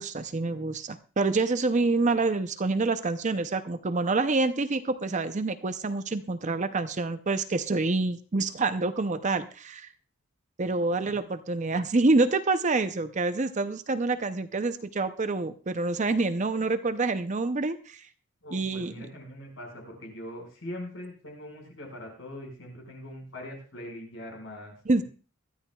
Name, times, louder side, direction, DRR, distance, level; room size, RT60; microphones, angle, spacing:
voice 1, 0.0-9.9 10.6-18.0 18.5-19.1 24.9-25.0, right 3 dB, 35° right, 10 dB, 0.6 m, -27 dB
voice 2, 18.4-24.7, left 1 dB, 60° left, 2 dB, 5.2 m, -42 dB
21.5 x 13.0 x 2.3 m, 0.37 s
head